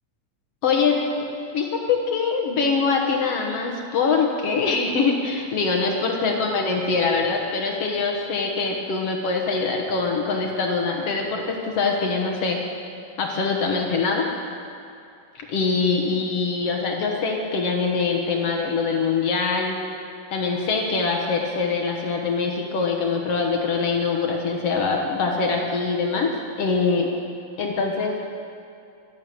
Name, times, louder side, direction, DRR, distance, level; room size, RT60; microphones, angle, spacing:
voice 1, 0.6-12.6 13.2-14.3 15.4-19.8 20.3-27.1 27.6-28.2, left 4 dB, 60° left, 1 dB, 1.8 m, -23 dB
12.5 x 11.5 x 7.7 m, 2.6 s
omnidirectional pair, 4.0 m